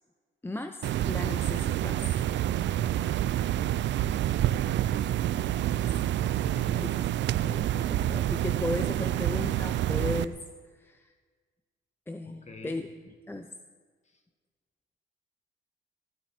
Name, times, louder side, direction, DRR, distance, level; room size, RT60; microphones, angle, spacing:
voice 1, 0.4-2.1 5.7-6.0 6.8-7.1 7.4-10.4 10.8-11.1 12.1-12.9 13.3-13.6, left 2 dB, 10° left, 7 dB, 0.6 m, -36 dB
sound 1, 0.8-10.2, right 12 dB, 65° right, 0.5 m, -28 dB
voice 2, 6.4-6.9 7.6-8.1 12.2-12.8 14.1-14.2, left 2 dB, 35° left, 5 dB, 1.8 m, -48 dB
15.0 x 12.5 x 4.4 m, 1.5 s
cardioid pair, 90°, 20 cm